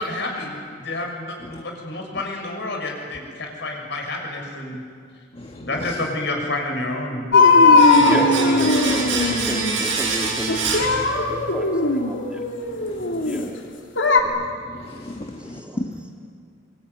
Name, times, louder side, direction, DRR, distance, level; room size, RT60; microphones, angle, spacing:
voice 1, 0.0-4.8 5.6-7.3 7.9-8.2, left 2 dB, 65° left, 1 dB, 6.4 m, -29 dB
voice 2, 5.3-5.7 7.6-8.1 12.8-13.3 14.7-15.6, left 1 dB, 30° left, 3 dB, 1.5 m, -39 dB
sound 1, 7.3-9.8 10.5-13.4 14.0-14.2, left 3 dB, 80° left, 2.6 m, -18 dB
Domestic sounds home sounds, 7.7-11.6 11.8-12.0, right 4 dB, 85° right, 7.3 m, -26 dB
voice 3, 8.0-12.4 13.2-13.6 14.1-14.4 15.4-15.8, equal, 5° right, 0 dB, 2.9 m, -31 dB
25.0 x 24.0 x 9.5 m, 2.1 s
head